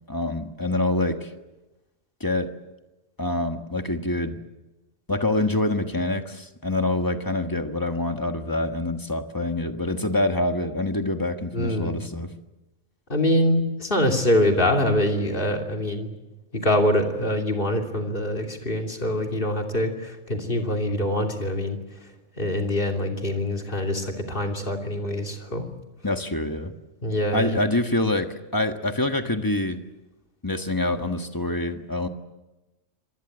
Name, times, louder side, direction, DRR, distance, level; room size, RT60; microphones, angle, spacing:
voice 1, 0.1-1.3 2.2-2.5 3.2-4.4 5.1-12.3 26.0-26.7 27.3-29.8 30.4-32.1, left 2 dB, 15° left, 6 dB, 1.5 m, -26 dB
voice 2, 11.5-12.0 13.1-16.1 16.5-21.8 22.4-25.6 27.0-27.6, left 1 dB, 45° left, 2 dB, 3.2 m, -24 dB
25.5 x 20.0 x 8.0 m, 1.0 s
omnidirectional pair, 1.3 m